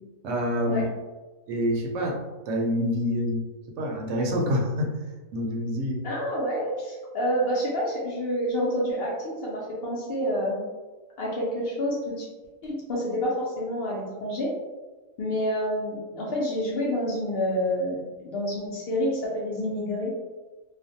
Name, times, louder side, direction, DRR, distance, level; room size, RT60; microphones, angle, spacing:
voice 1, 0.2-0.8 1.5-2.2 2.5-3.5 3.8-5.0 5.3-6.1, equal, 70° right, 1 dB, 0.9 m, -26 dB
voice 2, 6.0-10.6 11.2-12.3 12.6-14.5 15.2-20.1, equal, 60° left, -4 dB, 0.7 m, -28 dB
2.4 x 2.1 x 2.6 m, 1.2 s
omnidirectional pair, 1.4 m